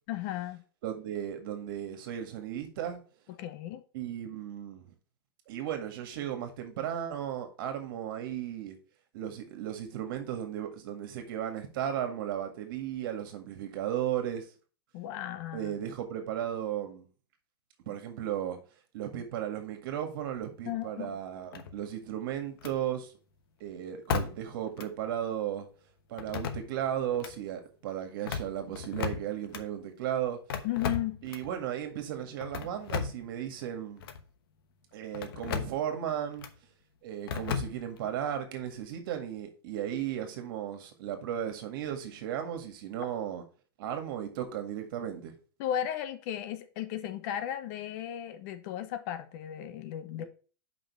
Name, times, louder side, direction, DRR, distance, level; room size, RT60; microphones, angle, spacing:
voice 1, 0.1-0.6 3.4-3.8 14.9-15.8 20.7-21.1 30.6-31.2 45.6-50.2, left 11 dB, 45° left, 0.8 m, -35 dB
voice 2, 0.8-3.0 3.9-4.9 5.5-8.8 9.1-14.5 15.5-17.1 17.9-18.6 18.9-23.1 23.6-25.7 26.1-30.4 31.2-34.0 34.9-36.5 37.0-43.4 43.8-45.4 50.2-50.3, right 10 dB, 60° right, 1.9 m, -35 dB
sound 1, 21.5-22.1 22.6-22.8 24.1-24.5 24.8-24.9 26.2-26.8 27.1-27.3 28.1-29.6 30.5-31.5 32.4-33.3 34.0-34.2 35.1-35.8 36.4-36.6 37.3-38.1, left 6 dB, 65° left, 1.1 m, -35 dB
5.4 x 5.2 x 6.2 m
supercardioid pair, 150°, 13 cm